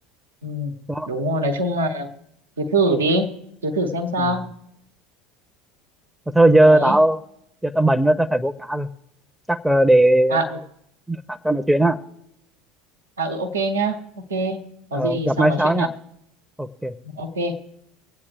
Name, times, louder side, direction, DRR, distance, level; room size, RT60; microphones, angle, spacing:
voice 1, 0.4-0.7 1.1-2.1 2.6-3.4 3.6-4.5 6.6-7.0 10.3-10.6 13.2-15.9 17.0-17.6, right 1 dB, 75° right, 5 dB, 1.0 m, -24 dB
voice 2, 6.3-7.2 7.6-8.9 9.5-10.6 11.1-12.0 14.9-15.9 16.6-16.9, right 1 dB, 5° right, 13 dB, 0.6 m, -18 dB
24.5 x 8.5 x 3.4 m, 0.79 s
figure-of-eight pair, 70°, 0 cm